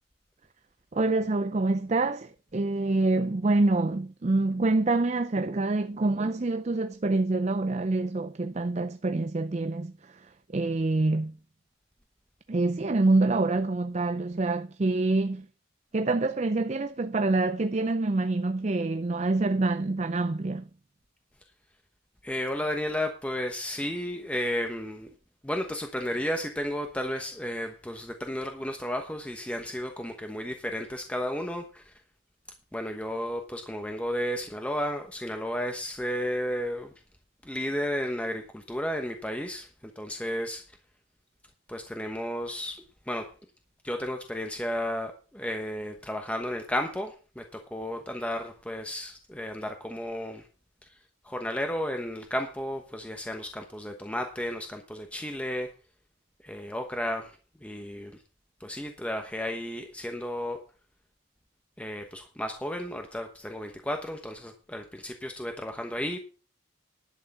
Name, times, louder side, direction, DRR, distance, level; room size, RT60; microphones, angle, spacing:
voice 1, 0.9-11.4 12.5-15.5 15.9-20.7, right 2 dB, 35° right, 0.5 m, -26 dB
voice 2, 22.2-25.1 25.4-31.9 32.7-36.9 37.4-40.7 41.7-43.3 43.8-50.5 50.8-51.0 51.2-55.7 56.4-57.3 57.6-58.1 58.6-60.6 61.8-66.2, equal, 5° left, 1.0 m, -33 dB
11.0 x 6.5 x 7.3 m
head